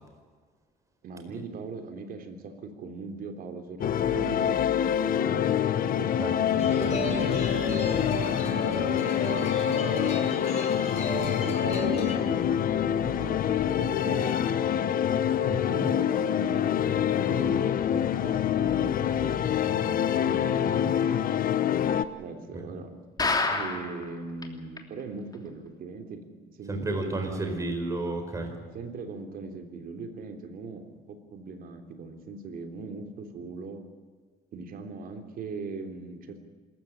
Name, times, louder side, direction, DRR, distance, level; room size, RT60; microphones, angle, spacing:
voice 1, 1.0-5.5 6.0-6.2 6.7-11.0 11.4-14.7 15.6-19.4 19.6-21.2 22.1-22.9 23.5-27.9 28.6-33.8 34.5-36.4, right 4 dB, 60° right, 6 dB, 3.5 m, -40 dB
sound 1, 3.8-22.0, left 9 dB, 55° left, 1.2 m, -26 dB
voice 2, 6.2-7.0 15.5-15.9 26.7-28.5, right 2 dB, 20° right, 4 dB, 4.6 m, -32 dB
sound 2, 6.6-12.2, left 1 dB, 40° left, 6.5 m, -34 dB
sound 3, 23.2-24.0 24.4-24.5 24.8-24.9 25.3-25.4, left 3 dB, 25° left, 3.0 m, -27 dB
26.5 x 14.5 x 8.9 m, 1.5 s
cardioid pair, 110°, 17 cm